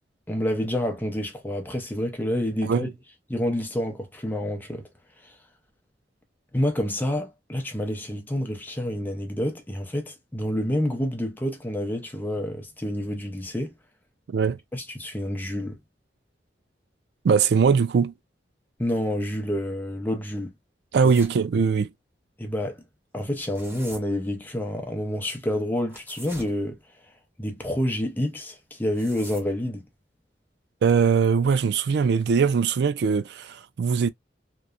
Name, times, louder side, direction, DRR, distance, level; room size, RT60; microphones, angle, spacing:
voice 1, 0.3-2.9 3.3-4.8 5.2-5.4 6.5-13.7 14.7-15.8 18.8-20.5 21.0-21.1 22.4-22.8 23.1-26.8 27.4-29.8, left 1 dB, 10° left, 0.6 m, -28 dB
voice 2, 14.3-14.6 17.2-18.1 20.9-21.9 30.8-34.1, right 6 dB, 65° right, 0.3 m, -21 dB
sound 1, 21.0-21.4 23.2-24.0 25.9-26.5 28.7-29.5, right 1 dB, 15° right, 1.0 m, -43 dB
2.9 x 2.0 x 2.4 m
head